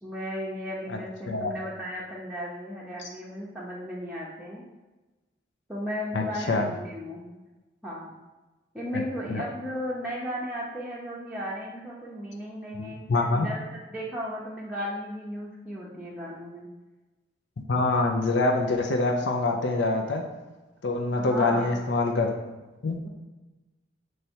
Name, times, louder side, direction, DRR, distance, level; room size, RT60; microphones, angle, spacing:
voice 1, 0.0-4.6 5.7-7.4 7.8-8.1 8.7-16.7 21.2-21.8 23.0-23.1, equal, 5° right, -7 dB, 0.7 m, -35 dB
voice 2, 6.1-6.7 9.3-9.4 12.8-13.5 17.7-20.2 20.8-22.3 22.8-23.0, left 2 dB, 70° left, 1 dB, 0.6 m, -25 dB
6.7 x 3.2 x 4.5 m, 1.2 s
head